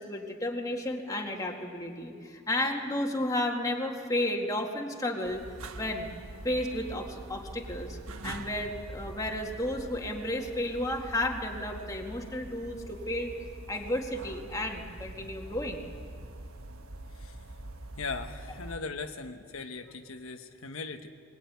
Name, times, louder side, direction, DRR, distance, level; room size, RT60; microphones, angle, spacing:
voice 1, 0.0-5.4 5.7-6.1 6.4-8.0 8.2-15.8, left 1 dB, 15° left, 1 dB, 2.0 m, -32 dB
sound 1, 5.2-18.8, right 2 dB, 85° right, 1.5 m, -44 dB
voice 2, 18.0-21.1, left 4 dB, 75° left, 6 dB, 1.2 m, -39 dB
21.5 x 21.0 x 9.4 m, 2.4 s
head